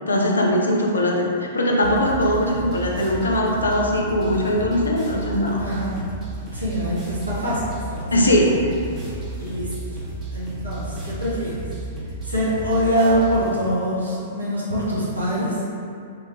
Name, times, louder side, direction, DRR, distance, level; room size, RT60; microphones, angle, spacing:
voice 1, 0.1-5.6 8.1-8.6, left 1 dB, 75° left, -1 dB, 0.5 m, -20 dB
sound 1, 1.8-13.6, right 2 dB, 30° right, 0.8 m, -33 dB
voice 2, 5.6-6.0 6.5-8.4 9.4-10.0 10.3-11.7 12.2-15.6, equal, 85° right, -8 dB, 1.0 m, -24 dB
3.6 x 2.4 x 2.7 m, 2.6 s
figure-of-eight pair, 105°, 0 cm